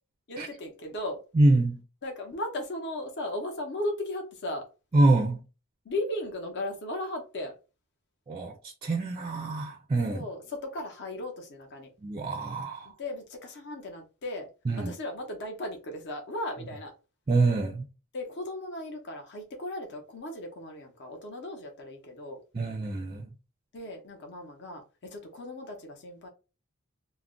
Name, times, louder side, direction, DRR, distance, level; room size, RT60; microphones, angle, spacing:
voice 1, 0.3-1.2 2.0-4.7 5.8-7.5 10.1-11.9 12.8-14.5 14.8-16.9 18.1-22.4 23.7-26.3, left 1 dB, 50° left, 0.7 m, -36 dB
voice 2, 1.3-1.8 4.9-5.4 8.3-8.6 8.8-10.3 12.0-12.9 14.7-14.9 17.3-17.9 22.5-23.3, right 2 dB, 25° right, 0.4 m, -25 dB
2.3 x 2.0 x 3.6 m
head